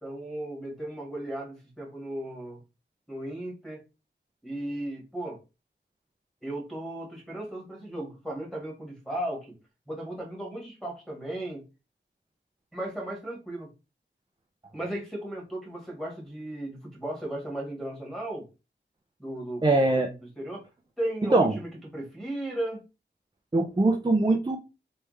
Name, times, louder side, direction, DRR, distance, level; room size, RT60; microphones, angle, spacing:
voice 1, 0.0-2.6 3.1-3.8 4.4-5.4 6.4-9.6 9.9-11.6 12.7-13.7 14.7-18.5 19.2-20.6 21.0-22.8, right 1 dB, ahead, 1.8 m, -36 dB
voice 2, 19.6-20.1 21.3-21.6 23.5-24.6, right 2 dB, 25° right, 0.5 m, -22 dB
3.4 x 3.2 x 3.2 m
wide cardioid pair, 70°, 19 cm